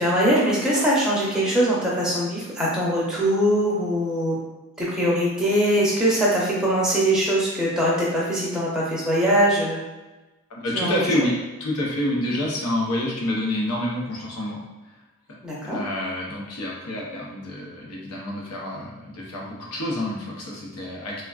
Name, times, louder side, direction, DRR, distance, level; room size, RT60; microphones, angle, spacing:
voice 1, 0.0-4.4 4.8-9.8 10.7-10.9 15.4-15.8, equal, 5° right, -7 dB, 0.6 m, -22 dB
voice 2, 10.5-11.3 11.6-14.6 15.6-21.2, left 1 dB, 90° left, -3 dB, 0.7 m, -28 dB
3.4 x 2.2 x 2.4 m, 1.1 s
head